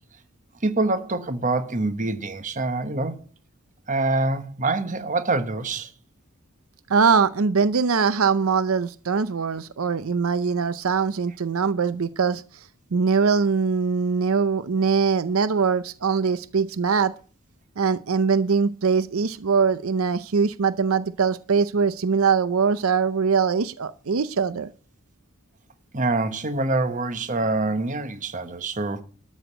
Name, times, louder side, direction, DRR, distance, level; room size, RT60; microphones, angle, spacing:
voice 1, 0.6-3.2 3.9-5.9 25.9-29.0, right 2 dB, 35° right, 1.2 m, -25 dB
voice 2, 6.9-12.4 12.9-17.1 17.8-24.7, right 5 dB, 80° right, 0.6 m, -22 dB
13.0 x 6.5 x 7.9 m
head